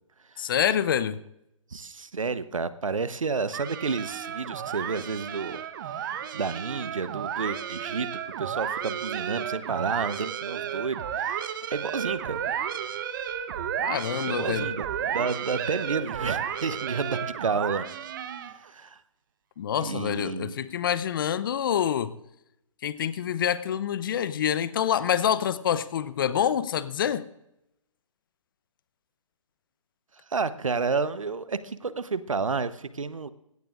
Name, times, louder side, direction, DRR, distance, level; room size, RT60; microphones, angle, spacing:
voice 1, 0.4-1.2 13.8-14.7 19.6-22.1 22.8-27.3, left 9 dB, 40° left, 15 dB, 0.7 m, -26 dB
voice 2, 1.7-5.6 5.9-12.4 14.3-17.9 18.6-19.0 19.8-20.7 30.3-33.3, right 4 dB, 75° right, 14 dB, 1.0 m, -31 dB
sound 1, 3.5-18.7, right 9 dB, 40° right, 1.0 m, -33 dB
19.0 x 16.5 x 2.5 m, 0.85 s
figure-of-eight pair, 135°, 17 cm